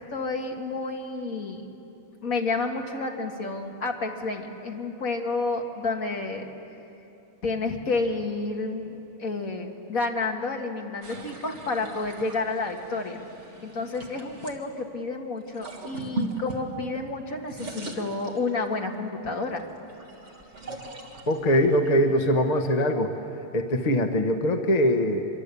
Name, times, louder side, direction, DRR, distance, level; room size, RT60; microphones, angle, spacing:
voice 1, 0.0-1.7 2.2-6.5 7.4-13.2 13.6-19.6, left 3 dB, 45° left, 2 dB, 2.0 m, -30 dB
sound 1, 11.0-14.6 15.4-17.1 17.4-18.9 19.4-22.8, right 2 dB, 35° right, 2.3 m, -39 dB
voice 2, 21.3-23.1 23.5-25.3, equal, 30° left, 5 dB, 0.8 m, -22 dB
25.5 x 22.5 x 8.4 m, 2.9 s
omnidirectional pair, 2.3 m